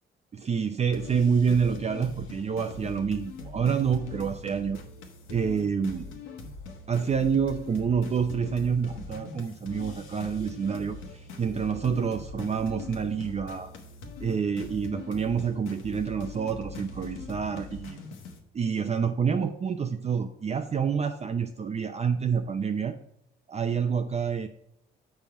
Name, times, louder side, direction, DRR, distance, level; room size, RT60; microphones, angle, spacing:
voice 1, 0.3-4.8 5.3-6.1 6.9-11.0 11.4-13.7 14.2-18.0 18.5-23.0 23.5-24.5, right 6 dB, 35° right, 6 dB, 0.5 m, -27 dB
sound 1, 0.9-18.4, left 3 dB, 90° left, 1.3 m, -42 dB
7.2 x 5.5 x 4.6 m, 0.76 s
cardioid pair, 90°, 20 cm